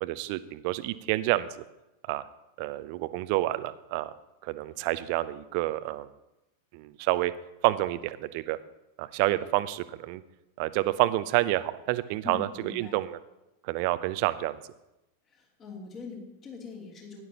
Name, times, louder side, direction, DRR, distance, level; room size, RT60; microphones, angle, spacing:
voice 1, 0.0-1.6 2.1-2.2 2.6-4.1 4.4-6.1 6.7-7.3 7.6-8.6 9.0-10.2 10.6-12.5 12.7-13.2 13.6-14.6, right 17 dB, 45° right, 15 dB, 0.6 m, -28 dB
voice 2, 12.2-13.0 15.3-17.2, left 5 dB, 30° left, -2 dB, 3.0 m, -42 dB
16.5 x 11.0 x 2.9 m, 0.92 s
figure-of-eight pair, 90°, 0 cm